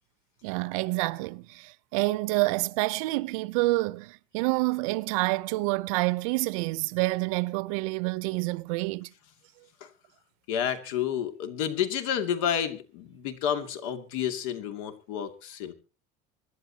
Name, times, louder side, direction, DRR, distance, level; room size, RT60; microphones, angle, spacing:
voice 1, 0.4-9.1, right 22 dB, 85° right, 0.8 m, -28 dB
voice 2, 10.5-15.7, left 9 dB, 75° left, 2.5 m, -30 dB
25.5 x 11.0 x 2.9 m
cardioid pair, 170°, 17 cm